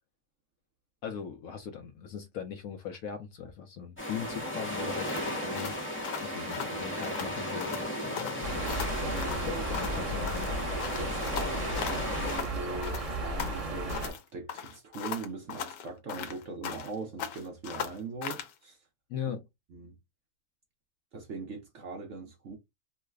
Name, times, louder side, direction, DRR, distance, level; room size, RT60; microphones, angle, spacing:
voice 1, 1.0-8.5 9.4-10.5 19.1-19.4, left 7 dB, 70° left, 0.9 m, -39 dB
sound 1, 4.0-12.4, equal, 10° left, 0.6 m, -35 dB
sound 2, 5.1-7.3 7.6-7.9 8.2-10.0 10.3-12.5 12.8-14.2 14.5-16.9 17.2-18.5, left 8 dB, 85° left, 1.3 m, -39 dB
sound 3, 8.4-14.1, right 1 dB, 30° right, 0.7 m, -34 dB
voice 2, 9.0-9.6 11.0-18.8 19.7-20.0 21.1-22.6, right 3 dB, 60° right, 0.9 m, -41 dB
3.1 x 2.0 x 3.4 m
omnidirectional pair, 1.8 m